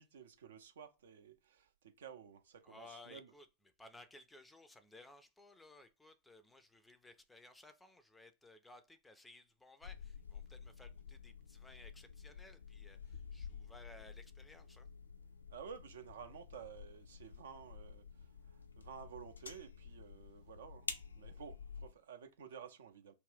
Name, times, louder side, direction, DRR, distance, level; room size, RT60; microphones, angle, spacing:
voice 1, 0.0-3.3 15.5-20.9 21.1-23.1, right 7 dB, 60° right, 0.4 m, -53 dB
voice 2, 2.6-3.5 3.8-14.9, left 2 dB, 10° left, 0.4 m, -59 dB
sound 1, 9.8-21.9, left 5 dB, 75° left, 0.4 m, -51 dB
2.5 x 2.2 x 3.3 m
figure-of-eight pair, 90°, 0 cm